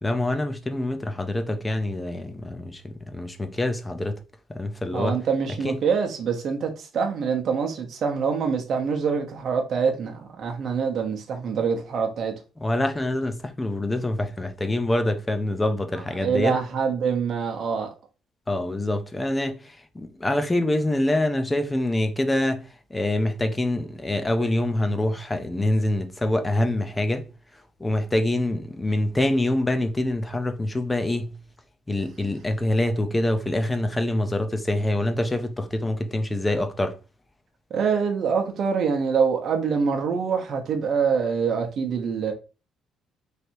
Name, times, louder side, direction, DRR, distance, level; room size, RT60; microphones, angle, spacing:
voice 1, 0.0-4.2 4.5-5.2 5.6-5.8 12.6-16.5 18.5-27.3 27.8-31.4 31.9-37.0, left 1 dB, 10° left, 0.5 m, -25 dB
voice 2, 4.9-12.3 16.2-17.9 37.7-42.3, right 6 dB, 45° right, 0.8 m, -25 dB
3.3 x 2.7 x 4.3 m
cardioid pair, 155°, 0 cm